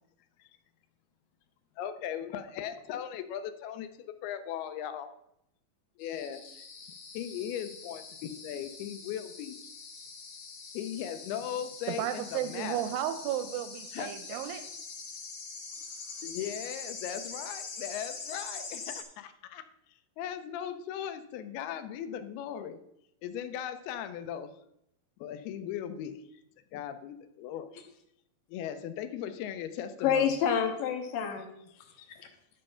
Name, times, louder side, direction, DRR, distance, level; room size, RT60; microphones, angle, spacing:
voice 1, 1.8-3.9 4.2-5.1 6.0-6.7 7.1-9.6 10.7-12.9 13.9-14.1 14.4-14.6 16.2-19.6 20.2-22.8 23.2-24.5 25.2-26.1 26.7-27.7 28.5-30.4, left 9 dB, 85° left, 10 dB, 2.7 m, -38 dB
sound 1, 6.0-19.0, left 5 dB, 55° left, 2.5 m, -44 dB
voice 2, 11.9-14.6, right 11 dB, 80° right, 10 dB, 2.2 m, -33 dB
voice 3, 30.0-31.5 31.8-32.3, left 8 dB, 70° left, 4 dB, 2.6 m, -29 dB
11.0 x 5.4 x 5.6 m, 0.79 s
omnidirectional pair, 4.4 m